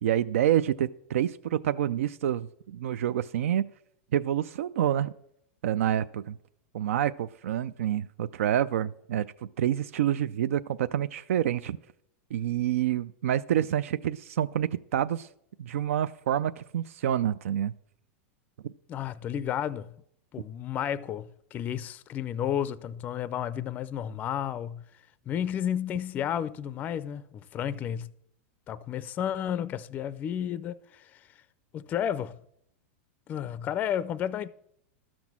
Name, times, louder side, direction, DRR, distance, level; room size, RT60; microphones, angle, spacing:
voice 1, 0.0-3.7 4.1-5.1 5.6-6.4 6.7-9.3 9.6-11.8 12.3-15.3 15.6-17.7 18.6-18.7, right 11 dB, 90° right, 0.4 m, -27 dB
voice 2, 18.9-19.9 20.3-24.8 25.3-28.1 28.7-31.2 31.7-32.4 33.3-34.5, left 9 dB, 20° left, 0.4 m, -32 dB
12.5 x 6.0 x 7.3 m
supercardioid pair, 150°, 7 cm